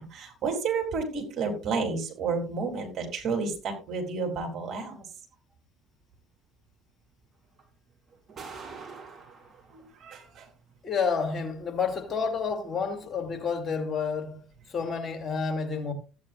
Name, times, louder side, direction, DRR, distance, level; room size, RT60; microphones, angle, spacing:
voice 1, 0.0-5.0 9.7-10.5, right 4 dB, 50° right, 3.6 m, -31 dB
sound 1, 6.6-6.7 7.6-7.7 8.1-10.2 11.7-12.0 12.8-12.9, right 4 dB, 35° right, 4.4 m, -45 dB
voice 2, 10.8-15.9, left 5 dB, 35° left, 2.5 m, -30 dB
15.0 x 9.2 x 2.6 m
figure-of-eight pair, 55°, 0 cm